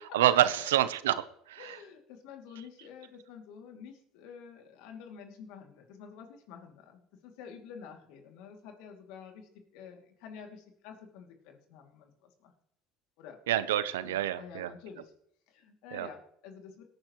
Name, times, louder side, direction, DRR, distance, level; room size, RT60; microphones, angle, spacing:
voice 1, 0.1-1.2 1.5-1.8 13.5-14.7 15.9-16.1, right 12 dB, 90° right, 14 dB, 0.8 m, -27 dB
voice 2, 1.6-12.5 13.2-13.4 14.0-15.1 15.5-16.8, left 7 dB, 70° left, 4 dB, 2.6 m, -49 dB
18.0 x 9.8 x 3.1 m, 0.67 s
supercardioid pair, 85°, 0 cm